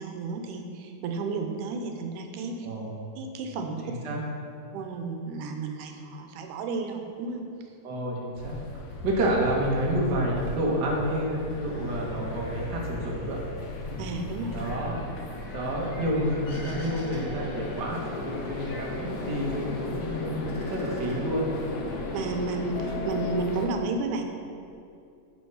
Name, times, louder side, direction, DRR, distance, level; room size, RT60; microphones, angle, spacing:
voice 1, 0.0-2.7 3.2-3.8 4.7-7.4 14.0-14.6 22.1-24.2, right 3 dB, 85° right, 4 dB, 2.3 m, -32 dB
voice 2, 2.6-3.0 3.8-4.2 7.8-8.6 9.0-13.4 14.5-15.0 15.5-21.5, right 1 dB, 45° right, -3 dB, 1.6 m, -29 dB
Truck, 7.9-22.2, left 3 dB, 80° left, 2.8 m, -45 dB
sound 1, 8.4-23.7, left 3 dB, 65° left, 2.1 m, -36 dB
sound 2, 16.5-18.8 19.1-20.0 20.3-21.8, left 1 dB, 35° left, 1.6 m, -48 dB
8.0 x 6.1 x 5.5 m, 2.6 s
omnidirectional pair, 3.5 m